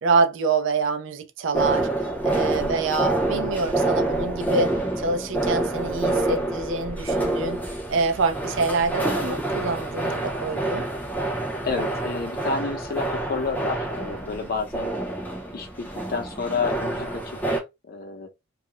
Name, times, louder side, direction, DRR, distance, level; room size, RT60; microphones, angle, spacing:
voice 1, 0.0-1.9 2.2-7.6 7.9-10.8, right 4 dB, 65° right, 0.4 m, -26 dB
sound 1, 1.5-17.6, right 2 dB, 10° left, 0.5 m, -27 dB
voice 2, 11.6-14.9 15.5-17.2 17.5-18.3, left 4 dB, 45° left, 0.7 m, -30 dB
2.3 x 2.0 x 2.9 m
head